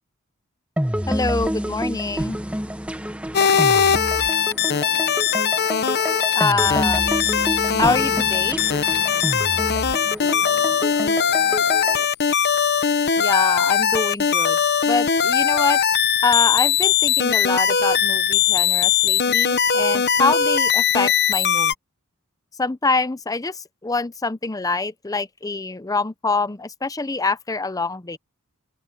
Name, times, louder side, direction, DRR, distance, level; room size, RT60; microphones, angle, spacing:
sound 1, 0.8-12.1, equal, 5° right, 1.4 m, -28 dB
voice 1, 1.1-2.4 6.3-7.0 7.8-8.6 13.2-14.6 14.9-15.8 16.2-21.7 22.6-28.2, left 3 dB, 15° left, 0.6 m, -25 dB
sound 2, 3.3-21.7, left 8 dB, 50° left, 1.0 m, -20 dB
voice 2, 4.2-5.0 10.1-12.1, left 3 dB, 70° left, 4.7 m, -46 dB
open air
head